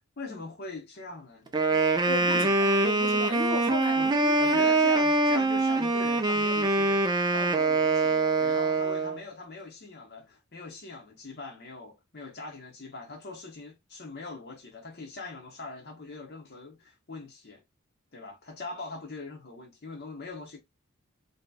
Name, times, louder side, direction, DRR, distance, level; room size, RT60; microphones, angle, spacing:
voice 1, 0.2-2.6 3.9-17.6 18.1-20.6, left 3 dB, 50° left, 0.8 m, -42 dB
Wind instrument woodwind instrument, 1.5-9.2, right 3 dB, 20° right, 0.3 m, -24 dB
voice 2, 2.0-4.8, left 4 dB, 80° left, 1.4 m, -35 dB
2.8 x 2.7 x 2.2 m
head